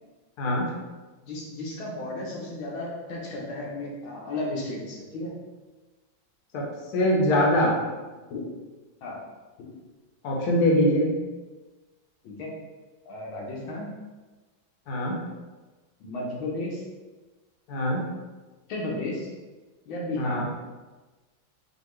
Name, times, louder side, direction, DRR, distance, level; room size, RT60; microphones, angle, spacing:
voice 1, 0.4-0.7 6.5-6.6 6.9-7.8 10.2-11.1 14.9-15.2 17.7-18.0 20.2-20.4, left 1 dB, 60° left, -2 dB, 1.3 m, -22 dB
voice 2, 1.2-5.3 8.3-8.5 9.0-9.2 9.6-9.7 12.2-12.5 13.1-13.9 16.0-16.8 18.7-19.3 19.9-20.4, left 2 dB, 80° left, -3 dB, 1.8 m, -33 dB
5.4 x 2.8 x 3.1 m, 1.2 s
omnidirectional pair, 2.2 m